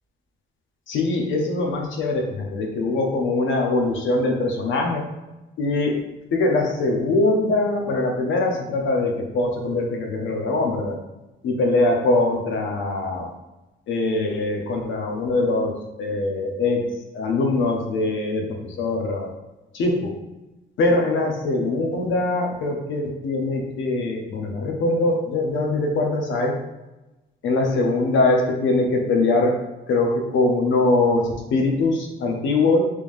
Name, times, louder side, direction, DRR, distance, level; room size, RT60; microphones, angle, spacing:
voice 1, 0.9-5.0 5.6-6.0 6.3-11.0 11.4-13.3 13.9-15.7 16.0-16.8 17.1-19.3 19.7-20.1 20.8-26.6 27.4-29.5 29.9-32.8, left 2 dB, 75° left, 1 dB, 0.8 m, -22 dB
3.5 x 3.3 x 2.6 m, 1.0 s
cardioid pair, 90°, 20 cm